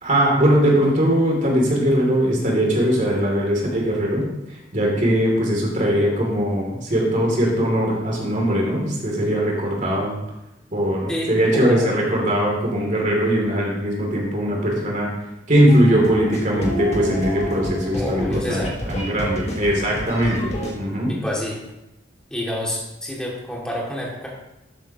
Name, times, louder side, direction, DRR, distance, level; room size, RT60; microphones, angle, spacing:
voice 1, 0.0-10.2 10.7-15.1 15.5-21.1, equal, 45° right, -1 dB, 2.9 m, -20 dB
voice 2, 11.1-11.9 17.9-18.7 21.1-21.6 22.3-24.3, left 1 dB, 5° left, -4 dB, 2.4 m, -28 dB
sound 1, 15.7-20.7, equal, 35° left, 1.7 m, -30 dB
12.5 x 8.3 x 3.0 m, 0.92 s
head